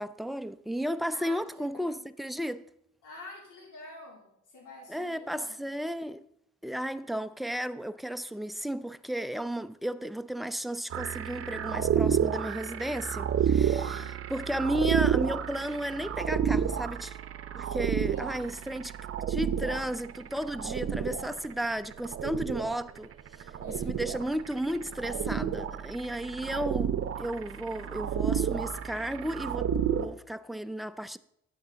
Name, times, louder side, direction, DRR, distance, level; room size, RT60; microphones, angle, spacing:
voice 1, 0.0-2.7 4.9-6.3 6.6-17.2 17.6-18.9 19.3-23.1 23.4-31.2, equal, ahead, 0.4 m, -34 dB
voice 2, 1.1-2.0 3.0-5.6 13.6-14.2 17.9-18.6 23.6-24.0, left 2 dB, 90° left, 3.0 m, -49 dB
sound 1, 10.9-30.1, right 8 dB, 50° right, 0.8 m, -30 dB
10.0 x 7.9 x 3.8 m
cardioid pair, 90°, 30 cm